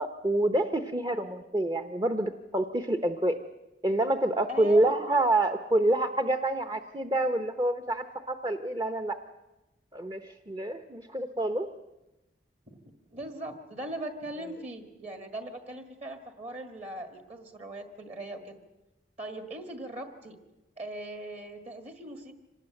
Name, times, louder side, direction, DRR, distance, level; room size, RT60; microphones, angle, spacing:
voice 1, 0.0-3.4 3.8-9.2 9.9-11.7, right 1 dB, 25° right, 9 dB, 0.9 m, -27 dB
voice 2, 4.5-5.2 12.7-18.6 19.2-20.4 20.8-22.4, right 1 dB, 40° right, 7 dB, 1.7 m, -40 dB
25.5 x 19.0 x 7.9 m, 1.0 s
head